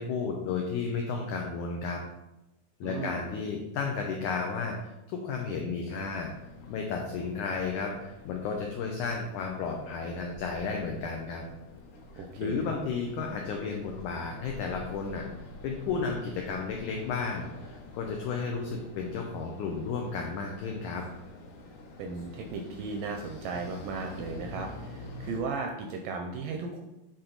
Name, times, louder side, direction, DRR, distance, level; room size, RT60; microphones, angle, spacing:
voice 1, 0.0-2.0 2.8-4.8 5.1-6.3 6.7-11.5 12.1-15.2 15.6-21.0, left 5 dB, 90° left, 2 dB, 1.7 m, -33 dB
voice 2, 2.8-3.2 12.2-12.8 22.0-26.8, right 4 dB, 80° right, 3 dB, 2.0 m, -36 dB
sound 1, 5.9-25.4, left 1 dB, 65° left, 2.5 m, -47 dB
8.1 x 4.3 x 3.8 m, 0.95 s
omnidirectional pair, 4.4 m